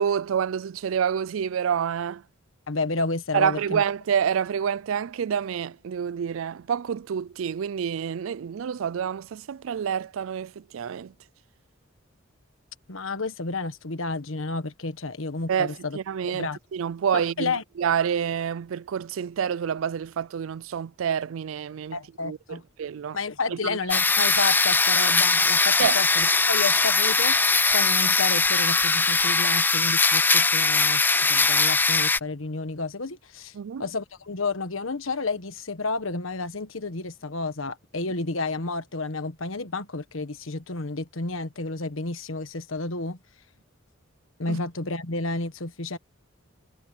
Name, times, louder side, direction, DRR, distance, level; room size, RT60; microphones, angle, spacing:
voice 1, 0.0-2.2 3.3-11.1 15.5-22.0 22.2-23.2 23.5-23.8 25.8-26.0 33.5-33.8 44.5-44.6, right 8 dB, 75° right, 0.4 m, -28 dB
voice 2, 2.7-3.8 12.9-16.0 16.3-16.6 17.1-17.6 21.9-22.6 23.1-31.0 31.3-33.5 33.8-43.2 44.4-46.0, left 3 dB, 75° left, 1.4 m, -31 dB
sound 1, 23.9-32.2, left 3 dB, 10° left, 0.3 m, -21 dB
head